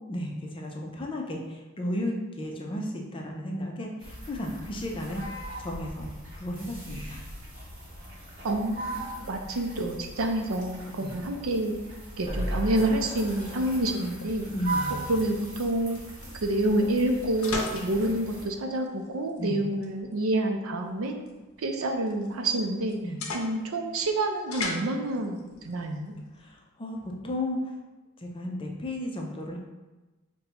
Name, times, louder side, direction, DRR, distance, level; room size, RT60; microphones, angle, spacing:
voice 1, 0.1-5.2 5.6-6.1 6.3-7.2 11.0-11.1 14.5-15.1 19.4-19.6 23.0-23.2 26.4-27.7 28.2-29.6, left 1 dB, 25° left, 0 dB, 0.5 m, -34 dB
sound 1, 4.0-18.4, right 2 dB, 45° right, 1.1 m, -40 dB
voice 2, 8.4-11.8 12.2-14.5 15.1-16.0 16.4-21.2 21.6-23.0 23.3-25.4 25.6-26.2, right 1 dB, 80° right, 4 dB, 0.5 m, -28 dB
sound 2, 12.3-15.5 15.9-16.0 16.2-16.3, equal, 25° right, 0.8 m, -36 dB
sound 3, 14.3-26.5, left 2 dB, 85° left, 0.6 m, -41 dB
5.4 x 2.2 x 2.8 m, 1.2 s
head